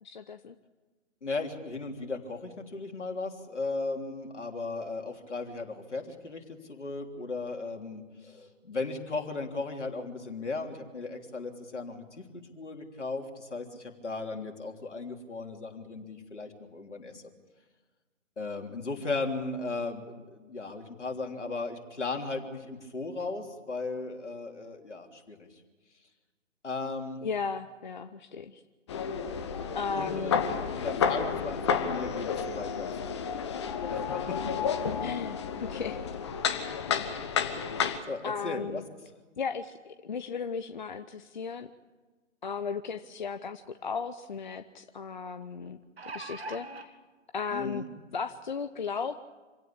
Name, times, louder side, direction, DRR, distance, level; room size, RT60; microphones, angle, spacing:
voice 1, 0.0-0.5 27.2-28.6 29.7-30.3 35.0-36.1 36.9-37.1 38.2-38.8 39.4-41.7 42.4-45.8 46.1-46.9 47.3-47.9 48.1-49.2, left 5 dB, 40° left, 10 dB, 0.8 m, -35 dB
voice 2, 1.2-6.4 6.7-17.2 18.4-25.5 26.6-27.2 29.9-30.4 30.7-32.9 33.9-34.4 38.1-38.8 47.5-47.9, left 3 dB, 70° left, 3 dB, 3.5 m, -36 dB
sound 1, 28.9-38.0, left 7 dB, 25° left, 1.1 m, -31 dB
sound 2, 43.5-43.6 44.0-44.1 45.7-46.9 47.8-47.9 48.3-48.4, right 3 dB, 55° right, 2.1 m, -41 dB
26.5 x 17.0 x 8.6 m, 1.3 s
figure-of-eight pair, 145°, 37 cm